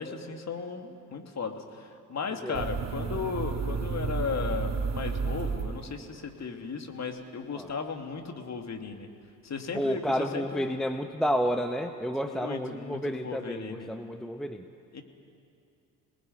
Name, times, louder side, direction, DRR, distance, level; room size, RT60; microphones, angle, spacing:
voice 1, 0.0-9.1 9.4-10.7 12.4-13.9 14.9-15.0, left 5 dB, 35° left, 4 dB, 2.8 m, -36 dB
sound 1, 2.5-6.3, right 5 dB, 35° right, 1.4 m, -32 dB
voice 2, 9.7-14.6, equal, ahead, 6 dB, 1.1 m, -30 dB
26.5 x 19.5 x 9.6 m, 2.5 s
figure-of-eight pair, 55°, 49 cm